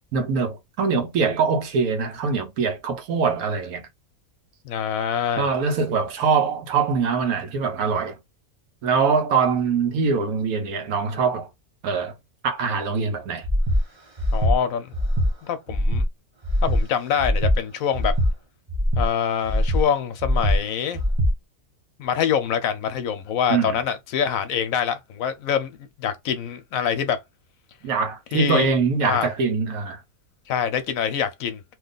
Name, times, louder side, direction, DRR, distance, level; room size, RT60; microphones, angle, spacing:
voice 1, 0.1-3.8 5.4-8.2 8.8-11.5 11.8-12.1 12.4-13.5 23.5-23.8 27.8-30.0, right 5 dB, 90° right, 1.2 m, -23 dB
voice 2, 4.6-5.5 14.3-14.9 15.4-16.0 16.6-18.1 19.0-21.0 22.0-27.2 28.3-28.7 29.0-29.3 30.5-31.6, left 8 dB, 75° left, 1.0 m, -25 dB
Breathing, 13.4-13.8 14.2-14.5 14.9-15.3 15.7-16.0 16.4-16.8 17.2-17.5 17.9-18.3 18.7-19.1 19.4-19.8 20.2-20.6 20.9-21.3, equal, 25° right, 0.6 m, -21 dB
2.8 x 2.3 x 3.8 m
omnidirectional pair, 1.5 m